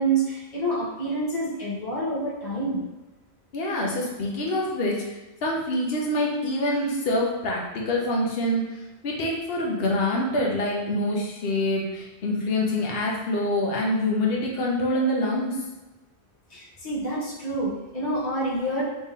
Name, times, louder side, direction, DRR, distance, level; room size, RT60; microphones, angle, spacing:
voice 1, 0.0-2.9 6.7-6.8 16.5-18.8, right 2 dB, 40° left, -7 dB, 1.3 m, -27 dB
voice 2, 3.5-5.0 5.4-8.7 9.0-15.6, left 1 dB, 65° left, -2 dB, 1.0 m, -25 dB
3.2 x 3.0 x 3.6 m, 1.1 s
omnidirectional pair, 1.1 m